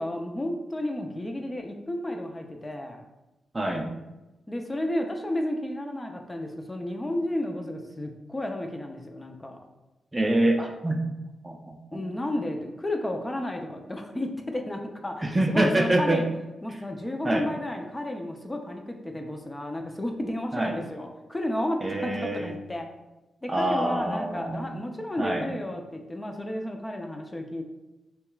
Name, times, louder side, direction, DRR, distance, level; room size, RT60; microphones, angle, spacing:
voice 1, 0.0-3.0 4.5-9.6 11.9-16.3 16.6-22.9 23.4-27.6, left 1 dB, 20° left, 3 dB, 0.7 m, -32 dB
voice 2, 3.5-3.9 10.1-11.0 11.4-12.0 15.2-16.2 17.2-17.5 20.5-20.8 21.8-22.5 23.5-24.7 25.2-25.5, right 1 dB, 25° right, 3 dB, 0.6 m, -26 dB
6.6 x 2.4 x 2.4 m, 1.0 s
supercardioid pair, 45°, 0 cm